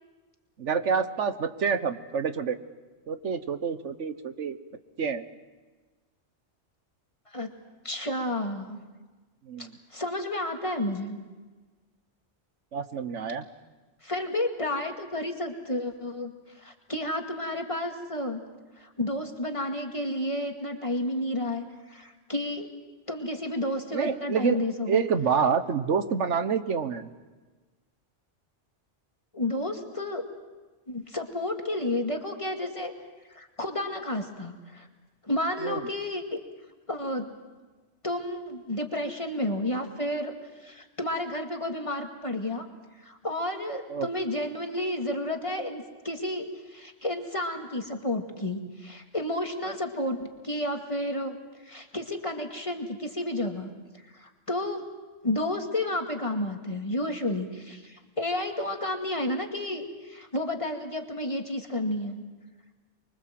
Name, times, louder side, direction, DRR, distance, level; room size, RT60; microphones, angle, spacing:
voice 1, 0.6-2.6 3.1-4.6 5.0-5.2 9.5-9.7 12.7-13.5 23.9-24.6 24.9-27.1 35.6-35.8 43.9-44.1, right 6 dB, 80° right, 11 dB, 1.5 m, -27 dB
voice 2, 7.8-8.8 9.6-11.2 14.0-18.4 18.8-22.7 23.1-25.0 29.3-30.2 30.9-32.9 33.3-34.9 35.2-36.4 36.9-37.3 38.0-42.7 43.0-51.4 51.6-53.7 54.1-54.8 55.2-62.2, left 1 dB, 25° left, 3 dB, 2.2 m, -31 dB
25.0 x 23.5 x 7.7 m, 1.3 s
omnidirectional pair, 1.2 m